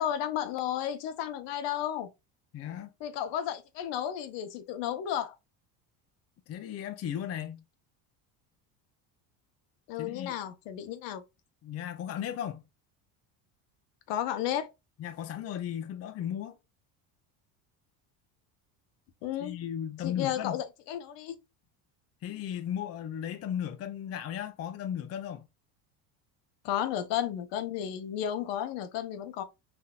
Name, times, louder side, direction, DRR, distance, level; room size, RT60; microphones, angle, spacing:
voice 1, 0.0-2.1 3.0-5.4 9.9-11.2 14.1-14.7 19.2-19.6 20.0-21.4 26.6-29.4, left 10 dB, 65° left, 0.8 m, -33 dB
voice 2, 2.5-2.9 6.5-7.6 10.0-10.3 11.6-12.6 15.0-16.6 19.4-20.6 22.2-25.5, left 9 dB, 35° left, 0.5 m, -36 dB
4.1 x 2.6 x 2.3 m
supercardioid pair, 100°, 46 cm